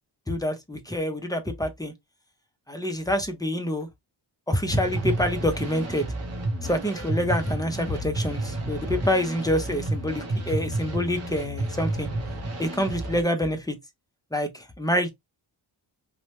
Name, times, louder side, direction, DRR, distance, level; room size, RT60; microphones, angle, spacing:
voice 1, 0.3-1.9 2.7-3.9 4.5-6.1 6.6-12.1 12.6-13.8 14.3-15.1, equal, 10° left, 0.4 m, -26 dB
sound 1, 4.6-13.2, right 2 dB, 35° right, 0.6 m, -31 dB
2.7 x 2.1 x 3.0 m
wide cardioid pair, 145°, 45 cm